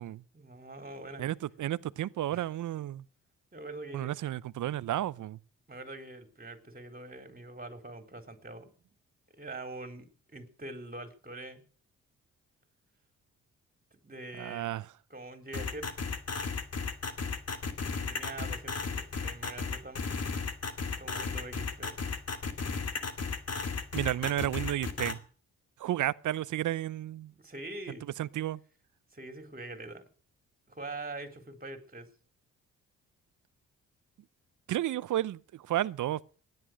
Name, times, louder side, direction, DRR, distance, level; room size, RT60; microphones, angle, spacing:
voice 1, 0.3-1.2 2.3-2.5 3.5-4.1 5.7-8.7 9.3-11.6 14.0-14.7 15.1-15.9 18.0-20.0 21.0-22.0 27.4-28.2 29.1-30.0 30.7-32.1, right 2 dB, 25° right, 4.2 m, -44 dB
voice 2, 1.2-3.0 3.9-5.4 14.4-14.9 23.9-25.2 25.8-27.3 28.2-28.6 34.7-36.2, right 13 dB, 60° right, 0.7 m, -32 dB
sound 1, 15.5-25.1, left 5 dB, 45° left, 2.7 m, -34 dB
16.5 x 11.0 x 6.5 m
supercardioid pair, 50°, 34 cm